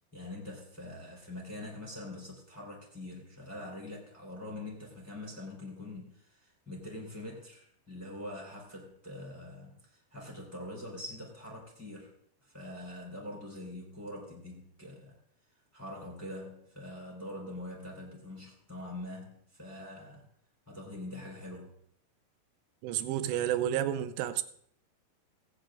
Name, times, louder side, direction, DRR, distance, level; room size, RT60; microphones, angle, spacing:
voice 1, 0.1-12.1 12.4-15.1 15.7-20.3 20.7-21.8, left 1 dB, 5° left, 3.1 m, -44 dB
voice 2, 22.8-24.4, right 11 dB, 80° right, 2.7 m, -30 dB
19.5 x 10.5 x 2.6 m
omnidirectional pair, 5.2 m